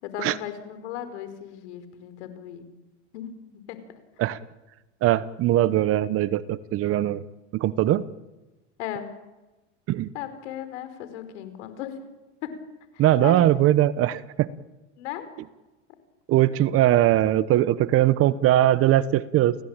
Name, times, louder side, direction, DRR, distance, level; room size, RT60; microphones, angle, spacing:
voice 1, 0.0-2.6 3.1-3.3 3.7-3.8 8.8-9.1 10.1-12.0 12.4-12.5 12.9-13.5 15.0-15.3, left 11 dB, 70° left, 11 dB, 4.9 m, -36 dB
voice 2, 5.0-7.2 7.5-8.0 9.9-10.1 13.0-14.5 16.3-19.6, right 13 dB, 40° right, 17 dB, 1.1 m, -21 dB
29.0 x 17.5 x 9.0 m, 1.1 s
supercardioid pair, 120°, 36 cm